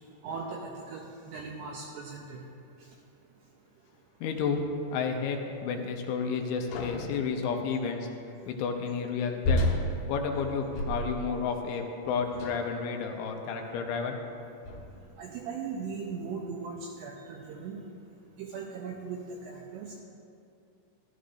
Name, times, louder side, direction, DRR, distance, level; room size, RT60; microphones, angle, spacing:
voice 1, 0.2-2.5 15.2-17.8 18.4-20.0, right 5 dB, 85° right, 0 dB, 2.4 m, -38 dB
voice 2, 4.2-4.6 4.9-8.1 8.5-9.6 10.1-14.2, left 5 dB, 90° left, 3 dB, 3.1 m, -31 dB
sound 1, 6.7-7.2 9.4-11.4 12.3-12.8 13.6-13.8 14.7-15.1, left 1 dB, 75° left, 3.4 m, -31 dB
14.5 x 12.5 x 2.6 m, 2.5 s
omnidirectional pair, 5.6 m